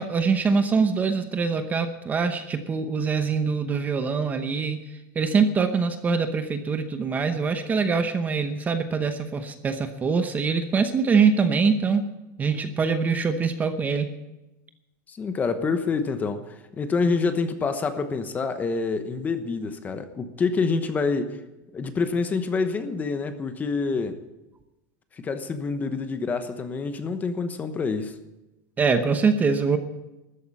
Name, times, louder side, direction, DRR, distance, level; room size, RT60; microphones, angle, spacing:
voice 1, 0.0-4.8 5.1-12.1 12.4-14.1 28.8-29.8, right 5 dB, 15° right, 8 dB, 0.9 m, -23 dB
voice 2, 15.1-21.4 21.7-24.2 25.1-28.1, left 4 dB, 15° left, 9 dB, 1.0 m, -27 dB
13.5 x 9.6 x 8.4 m, 0.99 s
supercardioid pair, 160°, 10 cm